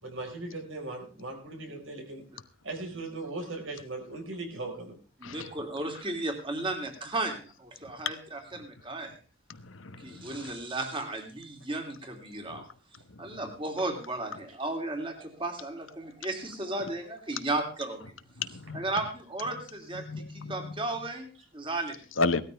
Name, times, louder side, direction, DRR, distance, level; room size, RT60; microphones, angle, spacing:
voice 1, 0.0-2.3 2.6-5.0, right 2 dB, 85° right, 4.9 m, -38 dB
voice 2, 5.2-9.1 10.0-12.6 13.2-18.1 18.7-22.0, right 2 dB, 25° right, 3.0 m, -34 dB
voice 3, 9.5-10.6 12.4-12.6 13.3-13.4 16.8-16.9 18.0-18.1 18.4-19.1 19.4-21.1 22.1-22.4, left 3 dB, 90° left, 1.1 m, -35 dB
18.5 x 13.0 x 3.5 m
head